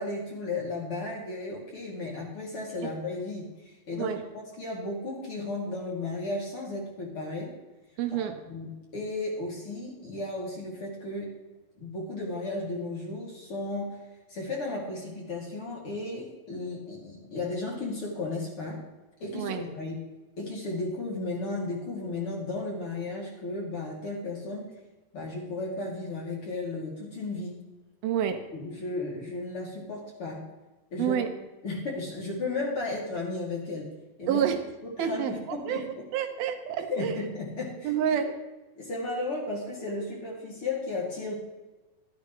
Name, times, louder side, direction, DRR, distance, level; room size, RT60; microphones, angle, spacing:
voice 1, 0.0-4.2 4.6-7.5 8.1-11.3 11.8-14.0 14.3-18.8 19.2-20.0 20.4-24.7 25.1-27.6 28.5-30.4 30.9-31.2 31.6-33.9 34.2-34.4 34.8-36.1 36.9-37.9 38.8-41.3, left 2 dB, 40° left, -4 dB, 3.3 m, -34 dB
voice 2, 8.0-8.4 19.3-19.6 28.0-28.4 31.0-31.3 34.3-34.6 35.0-35.3 35.7-37.1 37.8-38.4, right 9 dB, 80° right, 6 dB, 2.7 m, -28 dB
12.5 x 12.5 x 3.2 m, 1.1 s
omnidirectional pair, 4.4 m